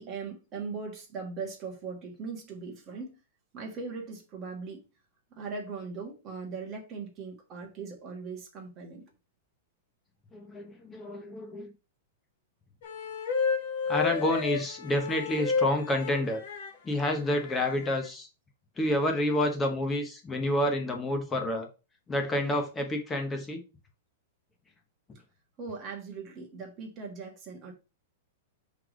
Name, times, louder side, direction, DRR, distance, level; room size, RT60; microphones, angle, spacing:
voice 1, 0.0-3.2 3.5-4.8 5.3-9.0 25.6-27.7, right 4 dB, 20° right, 1.4 m, -39 dB
voice 2, 10.3-11.7 13.9-16.4 16.8-18.3 18.8-21.7 22.1-23.6, left 1 dB, 10° left, 0.9 m, -29 dB
sound 1, 12.8-16.7 17.5-18.1, left 5 dB, 50° left, 1.0 m, -31 dB
5.8 x 3.3 x 4.9 m
supercardioid pair, 175°, 0 cm